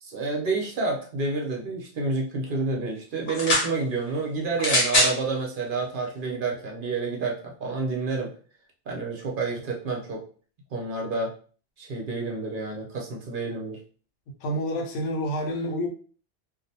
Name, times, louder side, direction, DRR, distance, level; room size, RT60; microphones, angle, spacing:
voice 1, 0.0-8.3 8.9-10.2 10.7-11.3 11.8-13.8, right 3 dB, 55° right, -1 dB, 0.7 m, -29 dB
sound 1, 3.3-3.7 4.6-5.2 6.1-6.2, left 1 dB, 45° left, 0.8 m, -22 dB
voice 2, 14.4-15.9, equal, 80° left, 2 dB, 0.9 m, -28 dB
2.5 x 2.1 x 2.7 m, 0.41 s
omnidirectional pair, 1.3 m